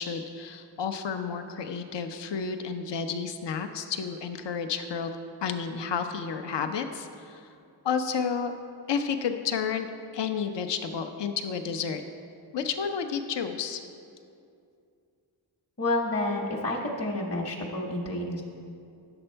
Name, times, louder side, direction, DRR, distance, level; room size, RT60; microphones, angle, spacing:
voice 1, 0.0-5.1 5.4-7.5 7.8-8.5 8.9-9.9 10.1-12.0 12.5-13.8, left 6 dB, 75° left, 7 dB, 0.6 m, -31 dB
voice 2, 15.8-18.4, left 2 dB, 35° left, -1 dB, 1.0 m, -29 dB
9.8 x 6.9 x 4.4 m, 2.5 s
wide cardioid pair, 85°, 43 cm